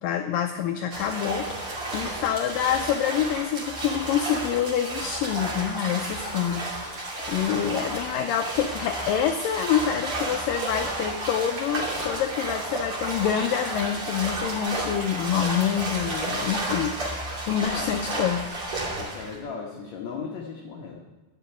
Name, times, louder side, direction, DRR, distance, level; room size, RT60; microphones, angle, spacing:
voice 1, 0.0-18.5, left 9 dB, 90° left, 6 dB, 1.9 m, -27 dB
sound 1, 0.9-19.4, right 1 dB, 35° right, 3.2 m, -32 dB
voice 2, 17.6-18.3 19.0-21.0, left 5 dB, 60° left, -1 dB, 1.9 m, -37 dB
11.0 x 7.6 x 9.2 m, 1.2 s
omnidirectional pair, 4.7 m